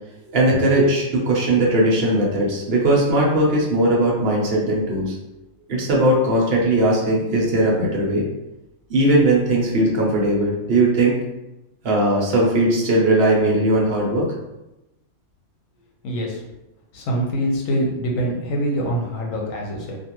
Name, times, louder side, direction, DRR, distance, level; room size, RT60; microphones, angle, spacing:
voice 1, 0.3-5.1 5.7-8.2 8.9-11.2 11.8-14.3, right 1 dB, 55° right, -3 dB, 0.9 m, -18 dB
voice 2, 16.0-16.4 16.9-20.0, right 1 dB, 80° left, -1 dB, 1.1 m, -24 dB
2.5 x 2.4 x 2.9 m, 0.96 s
omnidirectional pair, 1.4 m